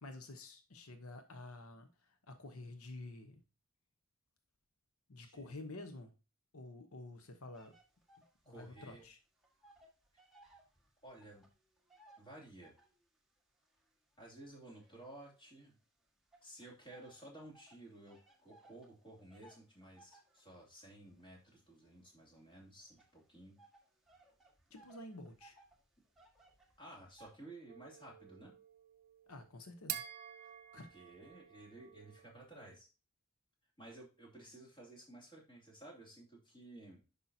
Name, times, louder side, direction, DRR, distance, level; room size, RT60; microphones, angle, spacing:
voice 1, 0.0-3.4 5.1-6.1 6.5-7.8 8.5-9.2 24.7-25.6 29.3-30.0 30.7-30.9, left 2 dB, 85° left, 7 dB, 1.0 m, -50 dB
sound 1, 7.5-9.1 9.4-13.0 13.6-15.7 16.3-27.4, right 1 dB, ahead, 1.6 m, -65 dB
voice 2, 8.4-9.0 11.0-11.5 12.2-12.7 14.2-15.8 16.4-23.6 26.8-28.5 30.4-32.9 33.8-37.0, right 1 dB, 25° left, -2 dB, 2.7 m, -55 dB
sound 2, 27.7-32.5, right 11 dB, 40° right, 0.6 m, -49 dB
10.0 x 5.5 x 2.8 m, 0.32 s
head